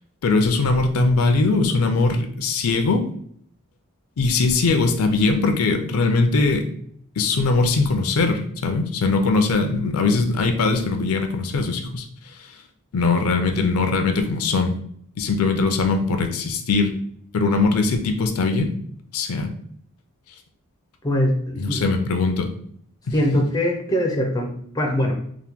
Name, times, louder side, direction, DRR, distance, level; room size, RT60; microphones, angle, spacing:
voice 1, 0.2-3.1 4.2-6.7 7.2-12.1 12.9-14.7 15.2-16.9 17.3-18.7 19.1-19.5 21.6-22.5 23.1-23.2, left 3 dB, 80° left, 6 dB, 0.4 m, -21 dB
voice 2, 21.0-21.9 23.1-25.1, equal, 15° left, 1 dB, 0.4 m, -22 dB
2.9 x 2.1 x 3.4 m, 0.64 s
head